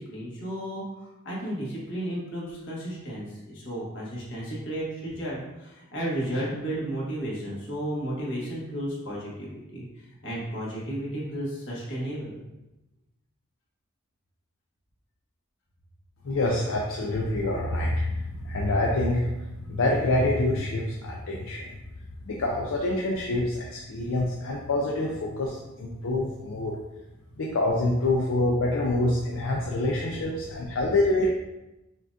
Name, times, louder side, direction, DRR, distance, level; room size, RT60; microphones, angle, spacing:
voice 1, 0.0-9.8 10.2-12.4, right 1 dB, 60° left, -6 dB, 1.3 m, -33 dB
voice 2, 16.2-19.3 19.6-21.7 22.2-26.8 27.4-31.3, left 2 dB, 75° left, -2 dB, 0.5 m, -26 dB
5.8 x 2.4 x 2.6 m, 0.98 s
head